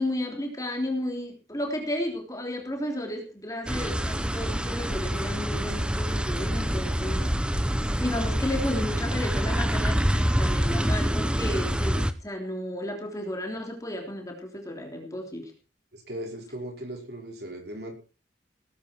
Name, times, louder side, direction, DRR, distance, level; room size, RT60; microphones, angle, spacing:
voice 1, 0.0-7.2 8.0-15.5, left 1 dB, 20° left, 2 dB, 3.5 m, -33 dB
sound 1, 3.7-12.1, equal, 5° right, 0.8 m, -26 dB
voice 2, 15.9-17.9, right 1 dB, 55° right, 2 dB, 5.2 m, -38 dB
18.5 x 10.5 x 4.6 m, 0.36 s
head